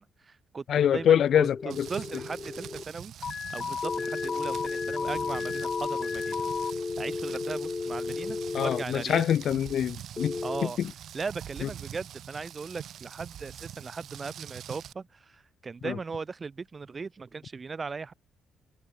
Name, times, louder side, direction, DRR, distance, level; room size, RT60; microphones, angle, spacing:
voice 1, 0.0-6.4 7.0-9.3 10.4-10.8 11.1-18.1, right 4 dB, 35° right, 6.4 m, -38 dB
voice 2, 0.7-1.9 8.5-10.4 10.6-10.9 11.6-11.7 15.8-15.9, left 9 dB, 65° left, 0.9 m, -25 dB
sound 1, 0.8-2.8 3.8-8.8 10.2-10.7, left 4 dB, 30° left, 0.8 m, -34 dB
Rain, 1.7-14.9, right 10 dB, 70° right, 6.4 m, -44 dB
Alarm, 3.2-6.7, left 6 dB, 50° left, 3.1 m, -34 dB
cardioid pair, 90°, 0 cm